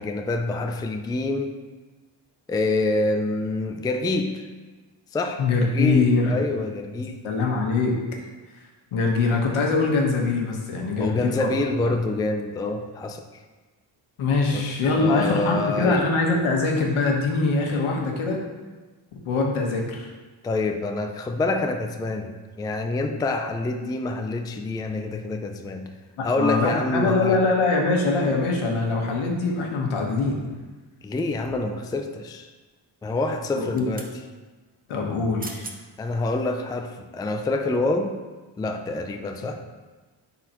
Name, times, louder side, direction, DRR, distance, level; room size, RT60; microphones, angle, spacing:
voice 1, 0.0-1.6 2.5-4.5 5.1-7.3 11.0-13.2 14.5-16.1 20.4-25.9 26.2-27.4 31.0-32.5 33.0-34.1 36.0-38.2 38.6-39.6, left 2 dB, 10° left, 6 dB, 0.3 m, -27 dB
voice 2, 5.4-6.4 6.9-7.0 7.2-8.0 8.9-11.5 14.2-18.4 19.1-20.1 26.2-30.4 33.6-33.9 34.9-35.6, left 3 dB, 80° left, 0 dB, 1.4 m, -23 dB
sound 1, 31.2-31.8 33.5-34.2 35.1-35.2 35.4-35.8 36.3-36.5, right 3 dB, 20° right, 0.7 m, -41 dB
10.0 x 4.2 x 3.0 m, 1.3 s
cardioid pair, 105°, 48 cm